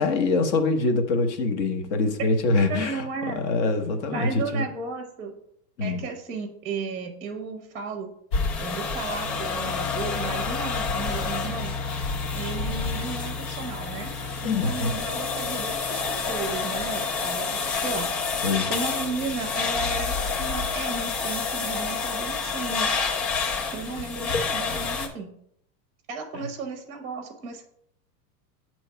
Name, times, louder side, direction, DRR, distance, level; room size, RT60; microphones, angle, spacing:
voice 1, 0.0-3.0 3.3-4.6 5.8-6.0 14.4-14.9 18.4-18.7, left 3 dB, 45° left, 6 dB, 1.0 m, -24 dB
voice 2, 2.7-3.4 4.1-5.3 5.8-8.1 8.6-11.7 12.3-14.1 14.4-18.1 18.7-22.9 23.7-25.3 26.1-27.6, right 4 dB, 15° right, 4 dB, 0.7 m, -34 dB
sound 1, 8.3-25.1, left 4 dB, 85° left, 1.6 m, -28 dB
7.8 x 3.1 x 5.5 m, 0.71 s
supercardioid pair, 160°, 49 cm